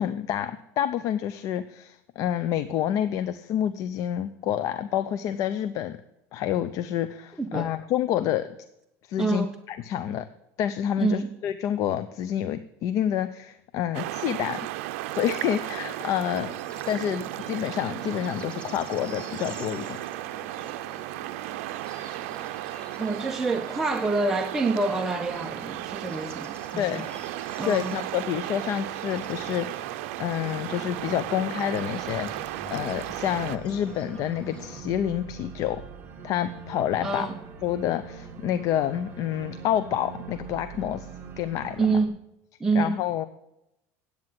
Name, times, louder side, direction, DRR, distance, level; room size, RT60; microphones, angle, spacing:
voice 1, 0.0-6.0 6.3-8.5 9.1-10.2 10.6-14.7 15.1-16.6 16.9-20.0 26.8-27.0 27.7-29.8 30.2-32.3 32.7-35.8 36.2-37.3 37.6-41.1 41.4-42.0 42.7-43.2, left 10 dB, 50° left, 12 dB, 0.6 m, -28 dB
voice 2, 7.4-7.7 9.2-9.6 11.0-11.3 23.0-27.1 27.6-28.0 37.0-37.3 41.8-42.1 42.6-43.0, right 3 dB, 5° right, 3 dB, 0.7 m, -27 dB
sound 1, 13.9-33.6, right 16 dB, 80° right, 0.5 m, -35 dB
Bird / Insect / Frog, 15.9-34.8, right 1 dB, 15° left, 1.9 m, -47 dB
Organ, 25.2-42.1, right 6 dB, 30° right, 1.6 m, -44 dB
9.7 x 8.6 x 7.6 m, 0.84 s
cardioid pair, 140°, 7 cm